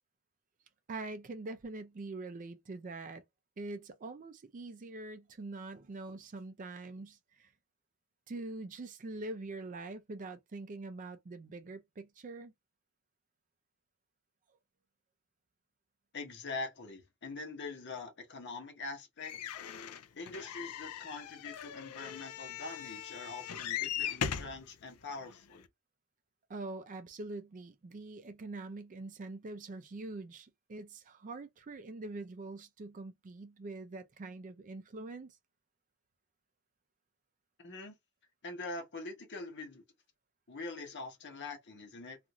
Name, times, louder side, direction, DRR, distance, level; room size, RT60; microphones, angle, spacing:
voice 1, 0.9-3.2 3.6-7.5 8.3-12.5 26.5-35.4, right 2 dB, 35° right, 0.4 m, -44 dB
voice 2, 16.1-19.3 20.2-25.6 37.6-37.9 38.4-39.8 40.5-42.2, left 3 dB, 50° left, 1.0 m, -43 dB
sound 1, 19.2-24.6 25.3-25.4 25.6-25.7, left 9 dB, 75° left, 0.4 m, -39 dB
2.5 x 2.5 x 2.9 m
head